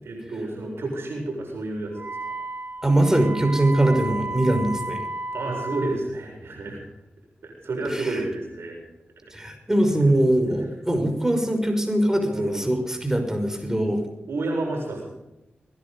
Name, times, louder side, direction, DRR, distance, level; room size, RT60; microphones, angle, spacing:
voice 1, 0.0-1.9 2.2-2.3 5.3-6.8 7.4-8.8 12.3-12.9 14.3-15.1, right 2 dB, 75° right, 1 dB, 7.2 m, -30 dB
Wind instrument woodwind instrument, 1.9-6.0, right 2 dB, 45° right, 3.2 m, -33 dB
voice 2, 2.8-5.1 7.9-8.2 9.3-14.0, right 1 dB, 10° right, 5 dB, 5.7 m, -22 dB
23.5 x 11.0 x 5.6 m, 0.91 s
cardioid pair, 40°, 4 cm